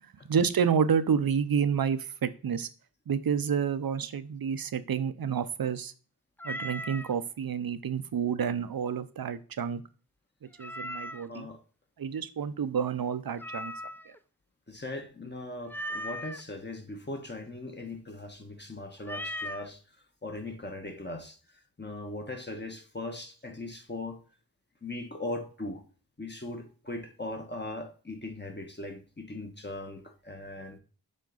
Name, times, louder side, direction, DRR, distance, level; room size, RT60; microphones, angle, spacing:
voice 1, 0.3-2.7 3.1-5.9 6.4-9.8 10.6-11.5 12.0-13.7, right 7 dB, 65° right, 0.7 m, -29 dB
Meow, 6.4-7.1 10.6-11.4 13.4-14.2 15.7-16.4 19.0-19.7, equal, 5° left, 0.4 m, -37 dB
voice 2, 11.3-11.6 14.7-19.8 20.2-24.2 24.8-25.8 26.2-30.8, left 2 dB, 30° left, 1.1 m, -39 dB
7.4 x 4.5 x 3.9 m
wide cardioid pair, 65°, 38 cm